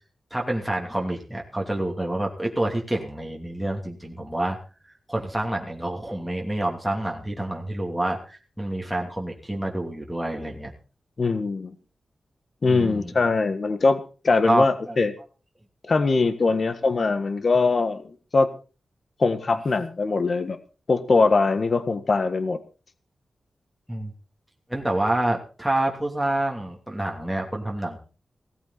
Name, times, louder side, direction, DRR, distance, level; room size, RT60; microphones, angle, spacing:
voice 1, 0.3-4.6 5.1-10.7 12.7-13.1 14.5-15.0 23.9-24.1 24.7-28.0, right 1 dB, ahead, -1 dB, 2.9 m, -27 dB
voice 2, 11.2-11.7 12.6-15.1 15.9-18.5 19.2-20.6 20.9-22.6, left 3 dB, 50° left, 11 dB, 1.5 m, -22 dB
17.5 x 14.5 x 4.2 m, 0.36 s
wide cardioid pair, 105°, 0 cm